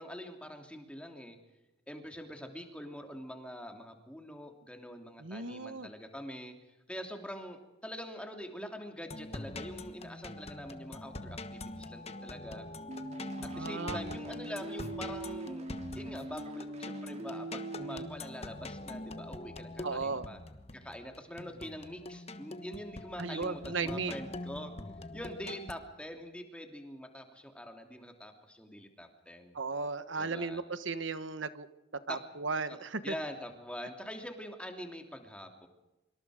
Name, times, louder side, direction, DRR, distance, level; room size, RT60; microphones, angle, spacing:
voice 1, 0.0-1.4 1.9-6.5 6.9-12.7 13.4-15.7 15.9-20.4 20.7-24.7 25.1-29.6 30.2-30.6 32.1-32.2 32.7-32.8 33.0-35.7, equal, 5° left, 4 dB, 3.0 m, -44 dB
voice 2, 5.2-5.9 13.4-14.0 19.8-20.3 23.2-24.1 29.5-31.7 32.1-33.1, right 4 dB, 75° right, 12 dB, 1.3 m, -36 dB
sound 1, 9.0-25.7, left 2 dB, 35° left, 1.3 m, -44 dB
sound 2, 12.9-18.1, right 1 dB, 35° right, 2.8 m, -42 dB
25.5 x 25.0 x 5.1 m, 0.98 s
head